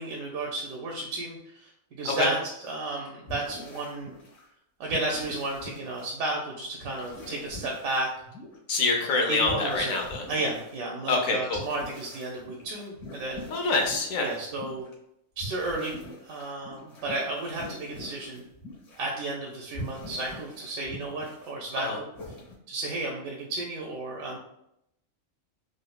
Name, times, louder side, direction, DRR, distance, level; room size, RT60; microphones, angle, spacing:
voice 1, 0.0-2.4 2.6-4.1 4.8-8.1 9.3-10.0 10.3-13.4 14.2-14.9 15.4-18.4 19.0-22.1 22.7-24.4, right 2 dB, 90° right, -2 dB, 1.0 m, -33 dB
sound 1, 3.3-4.5 4.9-6.1 6.8-8.6 9.4-10.8 11.5-14.9 15.4-19.3 19.5-21.5 21.9-22.5, left 1 dB, 65° left, 1.3 m, -43 dB
voice 2, 8.7-10.2 11.1-11.6 13.5-14.3 21.7-22.0, left 3 dB, 90° left, 2 dB, 1.1 m, -26 dB
4.9 x 2.0 x 2.2 m, 0.78 s
omnidirectional pair, 1.4 m